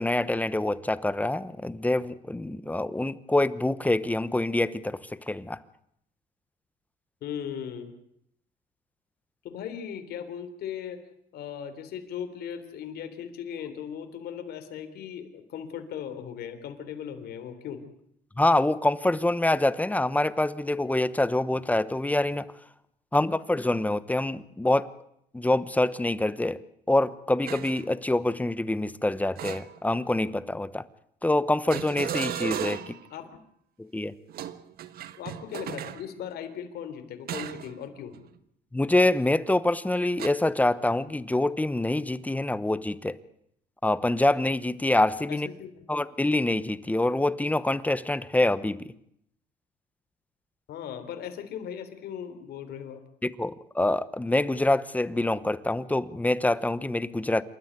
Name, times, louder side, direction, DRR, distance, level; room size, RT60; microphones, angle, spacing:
voice 1, 0.0-5.6 18.4-22.5 23.1-24.9 25.3-26.6 26.9-30.8 31.2-32.9 33.8-34.1 38.7-43.2 43.8-45.5 45.9-48.9 53.2-57.4, left 2 dB, 10° left, 16 dB, 1.0 m, -25 dB
voice 2, 7.2-7.9 9.4-11.0 11.3-17.8 32.7-33.4 35.2-38.1 45.3-45.8 50.7-53.0, left 8 dB, 70° left, 7 dB, 3.7 m, -38 dB
sound 1, 27.5-27.8 29.4-30.1 31.7-33.1 34.3-36.0 37.3-37.7 38.1-38.4 40.2-40.3, right 10 dB, 65° right, 1.4 m, -35 dB
27.5 x 13.0 x 9.5 m, 0.72 s
cardioid pair, 110°, 17 cm